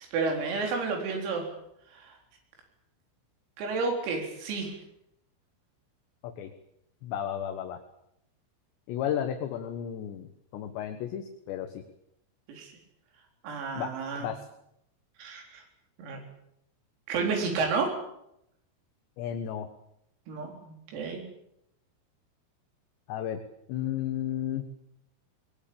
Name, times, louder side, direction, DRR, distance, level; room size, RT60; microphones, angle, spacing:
voice 1, 0.0-1.5 1.9-2.1 3.6-4.7 12.5-12.7 13.4-14.3 15.2-15.6 16.0-16.2 17.1-17.9 20.3-21.2, right 4 dB, 85° right, 2 dB, 6.8 m, -31 dB
voice 2, 7.0-7.8 8.9-11.8 13.7-13.9 14.2-14.5 19.2-19.7 23.1-23.4 23.7-24.7, left 10 dB, 70° left, 7 dB, 3.2 m, -33 dB
21.5 x 21.5 x 8.7 m, 0.78 s
omnidirectional pair, 6.0 m